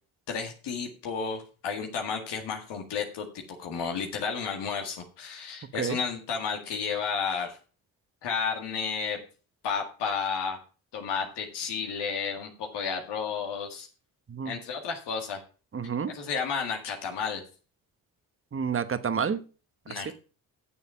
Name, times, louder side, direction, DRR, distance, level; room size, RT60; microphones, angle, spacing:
voice 1, 0.3-7.6 8.2-9.2 9.6-10.6 10.9-13.9 14.4-15.4 16.1-17.4 19.9-20.1, left 6 dB, 75° left, 1 dB, 2.0 m, -32 dB
voice 2, 15.7-16.1 18.5-19.4 19.9-20.1, right 6 dB, 30° right, 13 dB, 1.1 m, -29 dB
8.5 x 7.2 x 5.6 m, 0.36 s
hypercardioid pair, 50°, 42 cm